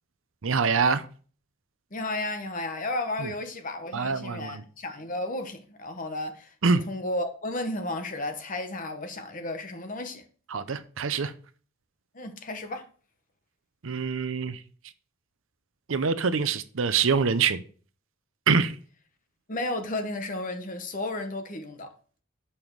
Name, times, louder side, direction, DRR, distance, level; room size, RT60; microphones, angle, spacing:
voice 1, 0.4-1.0 3.2-3.3 3.9-4.5 6.6-6.8 10.5-11.3 13.8-14.6 15.9-17.6 18.5-18.7, right 5 dB, 65° right, 0.6 m, -25 dB
voice 2, 1.9-10.2 12.1-12.9 19.5-21.9, left 2 dB, 40° left, 1.0 m, -33 dB
7.0 x 5.7 x 4.6 m
head